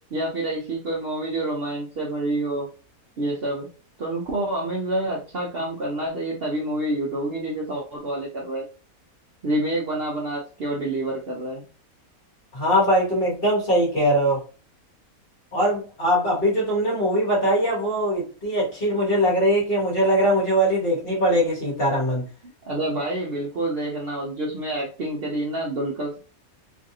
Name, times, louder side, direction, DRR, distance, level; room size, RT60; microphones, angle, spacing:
voice 1, 0.1-2.7 3.2-3.7 4.0-8.7 9.4-11.6 22.7-26.2, right 1 dB, 55° right, -2 dB, 0.7 m, -28 dB
voice 2, 12.5-14.4 15.5-22.3, equal, 40° left, -3 dB, 1.3 m, -21 dB
3.1 x 2.6 x 2.6 m, 0.35 s
omnidirectional pair, 1.6 m